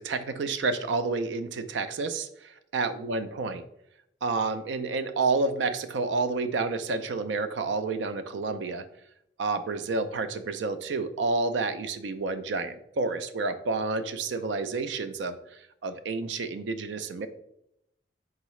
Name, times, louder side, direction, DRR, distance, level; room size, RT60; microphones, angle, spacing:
voice 1, 0.0-3.6 4.2-8.8 9.4-17.3, right 3 dB, 85° right, 11 dB, 0.4 m, -30 dB
3.9 x 3.6 x 3.1 m, 0.77 s
head